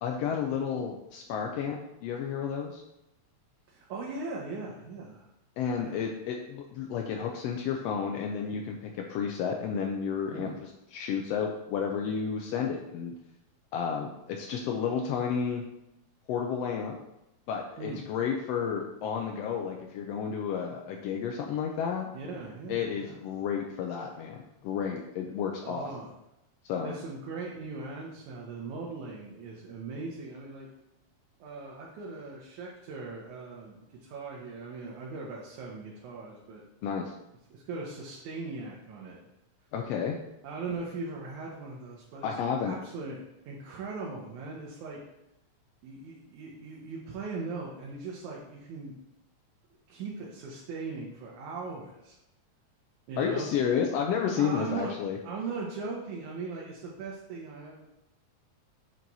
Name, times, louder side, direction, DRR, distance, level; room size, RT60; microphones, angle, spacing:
voice 1, 0.0-2.8 5.6-13.1 13.7-15.6 16.3-16.9 17.5-22.1 22.7-25.9 26.6-26.9 36.8-37.1 39.7-40.2 42.2-42.7 53.2-55.2, left 7 dB, 80° left, 2 dB, 1.5 m, -31 dB
voice 2, 3.7-5.3 5.8-6.0 10.3-10.6 17.8-18.0 22.1-23.2 25.6-26.1 26.8-30.7 31.4-36.6 37.5-39.2 40.4-42.4 42.7-45.0 45.8-48.9 49.9-52.2 53.1-53.5 54.4-57.9, right 4 dB, 80° right, -3 dB, 2.3 m, -39 dB
7.4 x 4.7 x 4.0 m, 0.87 s
omnidirectional pair, 3.4 m